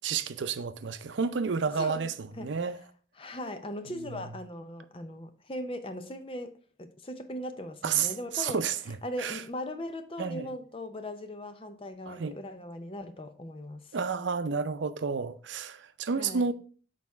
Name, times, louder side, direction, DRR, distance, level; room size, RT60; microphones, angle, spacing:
voice 1, 0.0-2.8 4.0-4.2 7.8-9.4 10.2-10.5 12.1-12.3 13.9-16.5, right 5 dB, 85° right, 0.5 m, -31 dB
voice 2, 1.7-2.1 2.3-2.5 3.2-6.5 6.8-8.6 9.0-13.9 16.1-16.5, left 1 dB, 30° left, 0.6 m, -39 dB
6.4 x 4.1 x 4.6 m
head